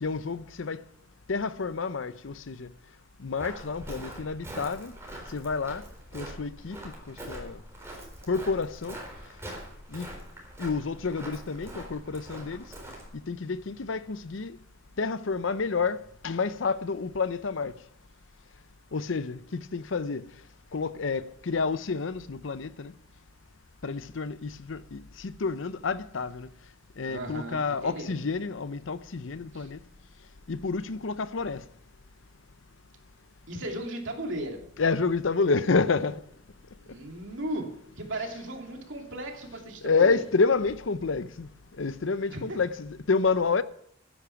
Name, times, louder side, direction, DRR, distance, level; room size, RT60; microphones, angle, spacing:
voice 1, 0.0-0.8 1.3-2.7 3.2-4.9 5.3-5.8 6.1-7.6 8.3-9.0 9.9-10.1 10.6-12.6 13.1-14.6 15.0-17.7 18.9-20.2 20.7-22.9 23.8-26.5 27.0-29.8 30.5-31.6 34.8-36.2 39.8-41.5 41.8-43.6, left 4 dB, 70° left, 0.7 m, -29 dB
Walk footsteps, 3.4-13.1, right 1 dB, 15° right, 4.2 m, -43 dB
voice 2, 27.1-28.2 29.5-29.7 33.5-34.6 36.8-37.7 38.0-40.2 42.3-42.4, right 1 dB, 65° right, 2.8 m, -36 dB
13.0 x 10.0 x 5.8 m
head